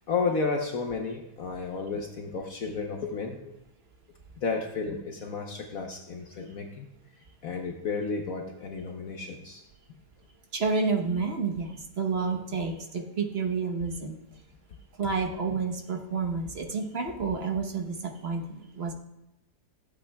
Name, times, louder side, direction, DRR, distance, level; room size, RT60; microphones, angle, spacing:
voice 1, 0.1-3.5 4.4-6.9 7.4-9.6, left 4 dB, 60° left, 2 dB, 1.2 m, -32 dB
voice 2, 10.5-14.2 15.0-18.9, right 4 dB, 45° right, 3 dB, 1.1 m, -30 dB
15.5 x 8.4 x 2.3 m, 0.89 s
omnidirectional pair, 1.8 m